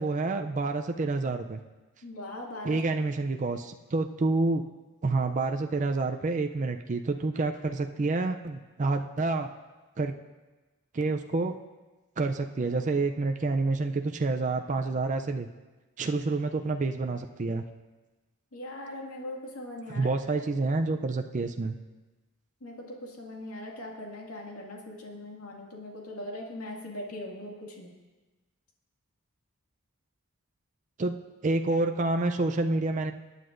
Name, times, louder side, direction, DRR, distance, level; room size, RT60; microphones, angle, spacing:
voice 1, 0.0-1.6 2.6-4.6 5.0-9.5 10.0-10.1 10.9-11.5 12.2-15.5 16.0-17.6 19.9-21.8 31.0-31.2 31.4-33.1, right 3 dB, 35° right, 5 dB, 0.4 m, -28 dB
voice 2, 2.0-2.8 18.5-20.1 20.4-20.5 22.6-27.9, left 1 dB, 80° left, -1 dB, 2.1 m, -40 dB
22.5 x 9.5 x 2.6 m, 1.2 s
head